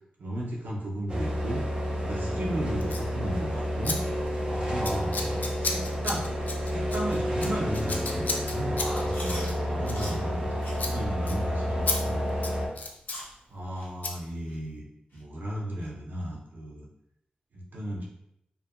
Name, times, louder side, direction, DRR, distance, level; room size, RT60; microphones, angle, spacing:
voice 1, 0.2-1.6 2.0-4.0 4.6-5.2 5.6-6.2 6.6-8.8 9.6-10.5 10.8-12.2 13.5-14.8 15.1-16.9 17.5-18.0, right 1 dB, 80° right, -3 dB, 0.6 m, -34 dB
sound 1, 1.1-12.7, equal, 30° right, 0.5 m, -30 dB
voice 2, 2.0-2.7 4.4-5.5 8.8-10.4, equal, 10° left, -7 dB, 0.9 m, -37 dB
Scissors, 2.8-3.1 3.8-4.0 4.2-4.5 4.8-10.5 10.7-10.9 11.3-11.4 11.9-12.0 12.3-13.2 14.0-14.1, left 3 dB, 60° left, 0.3 m, -33 dB
Chewing mastication, 9.1-9.5 9.9-10.2 10.6-10.8 11.2-11.3 11.8-12.0 12.5-12.6 13.1-13.3 13.8-13.9 14.5-14.6 15.1-15.2 15.8-15.9, left 1 dB, 85° left, 0.7 m, -41 dB
2.7 x 2.4 x 2.2 m, 0.78 s
wide cardioid pair, 110°, 3 cm